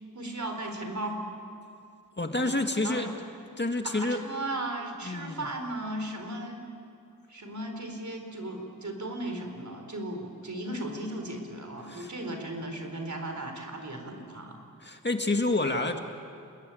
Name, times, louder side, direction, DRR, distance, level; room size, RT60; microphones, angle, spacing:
voice 1, 0.1-1.2 2.4-2.5 2.8-3.1 3.8-6.6 7.3-14.6, right 1 dB, 55° right, 4 dB, 4.4 m, -36 dB
voice 2, 2.2-3.1 3.6-4.2 5.0-5.5 11.9-12.1 14.8-16.0, left 2 dB, 30° left, 4 dB, 1.9 m, -28 dB
30.0 x 21.0 x 9.3 m, 2.4 s
wide cardioid pair, 85°, 34 cm